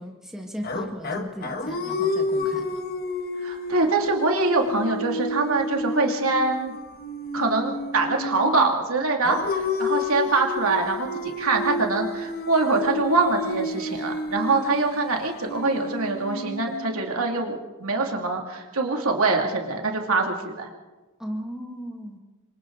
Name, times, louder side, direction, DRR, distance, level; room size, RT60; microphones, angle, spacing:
voice 1, 0.0-2.8 21.2-22.2, equal, ahead, 0 dB, 1.8 m, -36 dB
sound 1, 0.6-8.7 9.2-17.3, left 2 dB, 45° left, 1.4 m, -30 dB
voice 2, 3.4-6.7 7.3-20.7, right 3 dB, 75° right, 2 dB, 2.7 m, -24 dB
27.5 x 25.0 x 4.0 m, 1.2 s
head